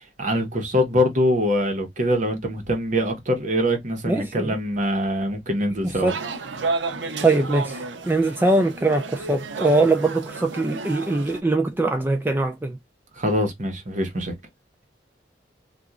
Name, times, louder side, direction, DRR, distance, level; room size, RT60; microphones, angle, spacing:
voice 1, 0.2-6.1 13.2-14.3, equal, 45° right, 1.0 m, -23 dB
voice 2, 4.1-4.6 5.8-6.2 7.2-12.8, right 2 dB, 10° right, 0.3 m, -22 dB
sound 1, 6.1-11.4, right 4 dB, 85° right, 0.6 m, -31 dB
2.9 x 2.4 x 2.4 m
head